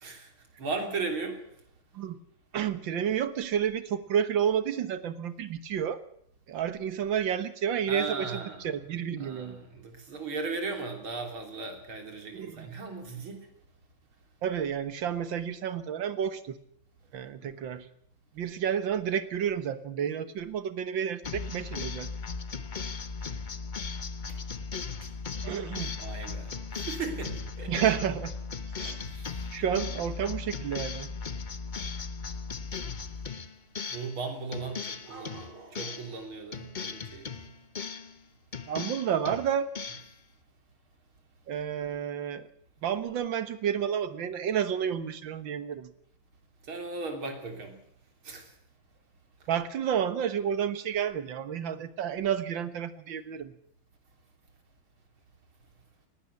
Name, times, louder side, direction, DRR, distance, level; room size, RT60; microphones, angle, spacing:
voice 1, 0.6-1.4 7.9-8.6 9.2-13.5 17.4-17.5 26.0-27.7 29.0-29.5 33.9-37.5 46.7-47.8 48.2-48.5, right 4 dB, 85° right, 5 dB, 4.2 m, -37 dB
voice 2, 2.5-6.0 6.5-9.6 12.3-12.7 14.4-16.6 17.1-17.9 18.3-22.1 25.4-25.9 27.7-28.3 28.8-29.0 29.5-31.1 38.7-39.7 41.5-42.5 42.8-45.9 49.5-53.5, right 8 dB, 70° right, 13 dB, 2.0 m, -30 dB
sound 1, 21.2-34.2 34.5-36.2 36.5-38.2 38.5-40.1, left 5 dB, 40° left, 0.6 m, -37 dB
18.5 x 17.5 x 8.4 m, 0.68 s
omnidirectional pair, 2.2 m